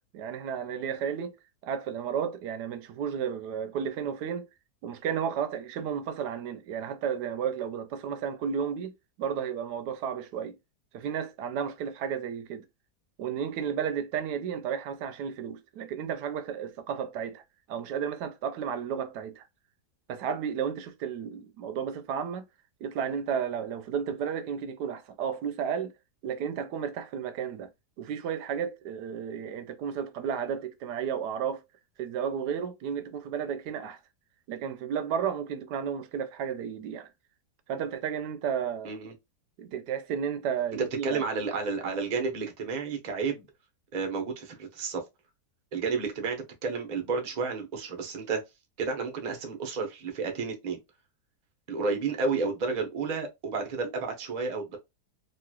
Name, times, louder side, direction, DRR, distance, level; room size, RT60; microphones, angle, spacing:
voice 1, 0.1-1.3 1.6-4.5 4.8-8.9 9.2-10.6 10.9-12.7 13.2-17.4 17.7-19.4 20.1-22.4 22.8-25.9 26.2-27.7 28.0-31.6 32.0-34.0 34.5-37.1 37.7-38.9 39.6-41.2, right 7 dB, 85° right, 1.2 m, -33 dB
voice 2, 41.0-43.5 43.9-45.0 45.7-48.4 48.8-50.8 51.7-54.8, right 4 dB, 40° right, 0.7 m, -31 dB
3.0 x 2.9 x 2.3 m
omnidirectional pair, 1.8 m